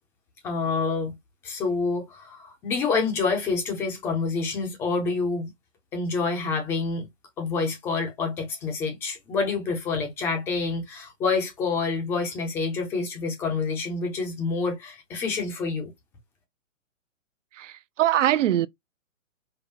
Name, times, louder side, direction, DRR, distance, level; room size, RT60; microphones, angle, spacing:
voice 1, 0.4-1.2 1.4-5.5 5.9-7.0 7.4-15.9, left 4 dB, 5° left, 0.4 m, -27 dB
voice 2, 17.5-18.7, right 12 dB, 70° right, 0.6 m, -23 dB
5.4 x 2.1 x 3.9 m
hypercardioid pair, 150°, 39 cm